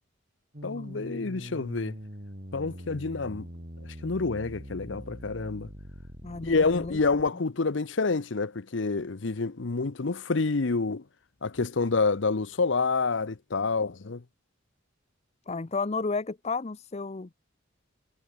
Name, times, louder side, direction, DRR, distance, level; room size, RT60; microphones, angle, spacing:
sound 1, 0.5-7.3, equal, 45° right, 8.0 m, -43 dB
voice 1, 0.6-2.0 2.5-3.5 4.0-5.7 6.4-11.0 11.4-14.2, left 4 dB, 65° left, 0.8 m, -28 dB
voice 2, 6.2-7.0 15.5-17.3, left 4 dB, 35° left, 0.6 m, -32 dB
head